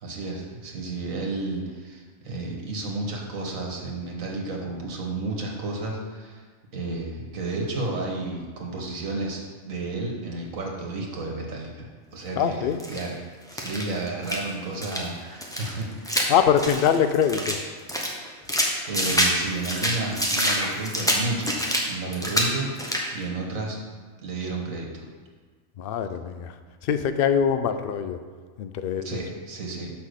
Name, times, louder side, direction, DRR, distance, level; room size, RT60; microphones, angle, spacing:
voice 1, 0.0-6.4 6.7-13.2 13.5-16.2 18.4-23.8 24.2-25.1 29.0-29.9, right 2 dB, 90° right, 0 dB, 1.7 m, -32 dB
voice 2, 12.4-12.8 16.3-17.6 25.8-26.5 26.8-28.2 28.6-29.2, left 8 dB, 65° left, 9 dB, 0.6 m, -23 dB
sound 1, 12.8-13.1 13.5-14.5 14.8-15.0 15.4-17.6 17.9-19.4 19.6-21.8 22.1-22.5 22.8-23.1, equal, 5° left, 0.8 m, -26 dB
6.0 x 5.8 x 6.5 m, 1.5 s
omnidirectional pair, 1.4 m